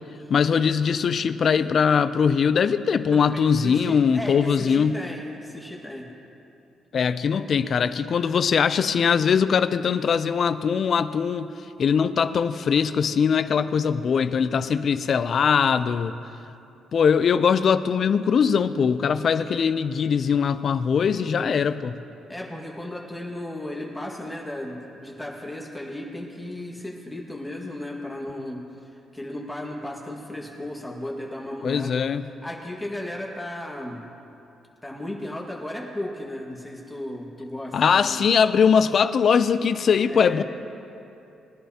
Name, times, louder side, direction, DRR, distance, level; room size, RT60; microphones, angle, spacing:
voice 1, 0.3-5.0 6.9-11.5 11.8-16.2 16.9-21.9 31.6-32.3 37.7-40.4, left 6 dB, 55° left, 13 dB, 0.5 m, -21 dB
voice 2, 3.1-6.1 21.3-21.6 22.3-34.1 34.8-38.2 40.1-40.4, left 1 dB, 10° left, -2 dB, 1.8 m, -35 dB
21.5 x 11.0 x 2.9 m, 2.8 s
cardioid pair, 90°, 0 cm